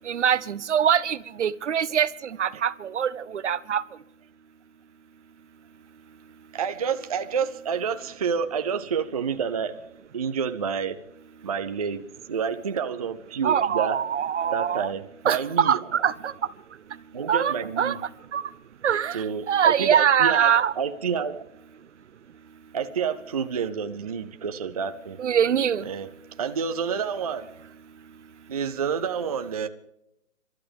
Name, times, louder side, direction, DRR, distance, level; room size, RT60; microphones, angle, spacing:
voice 1, 0.0-3.8 13.4-14.9 15.2-16.3 17.3-18.0 18.3-18.4 18.8-20.7 25.2-25.9, right 8 dB, 60° right, 17 dB, 0.8 m, -23 dB
voice 2, 6.5-9.7 10.1-11.0 11.4-12.0 12.3-14.0 14.5-15.8 17.1-18.0 19.1-21.4 22.7-25.2 25.8-26.1 26.4-27.5 28.5-29.7, right 6 dB, 30° right, 8 dB, 0.5 m, -28 dB
29.0 x 12.5 x 3.5 m, 0.82 s
hypercardioid pair, 155°, 39 cm